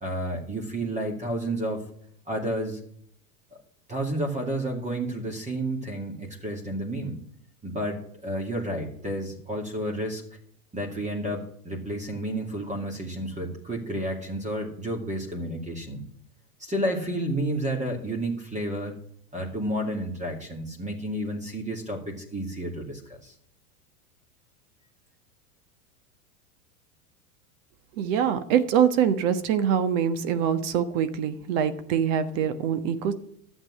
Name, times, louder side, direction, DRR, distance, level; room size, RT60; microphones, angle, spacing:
voice 1, 0.0-1.8 2.3-2.8 3.5-3.6 3.9-7.2 7.6-10.2 10.7-16.0 16.6-18.9 19.3-23.3, right 1 dB, 15° right, 1 dB, 2.4 m, -31 dB
voice 2, 28.0-33.1, right 8 dB, 55° right, 11 dB, 1.4 m, -24 dB
12.0 x 8.1 x 6.4 m, 0.66 s
hypercardioid pair, 105°, 46 cm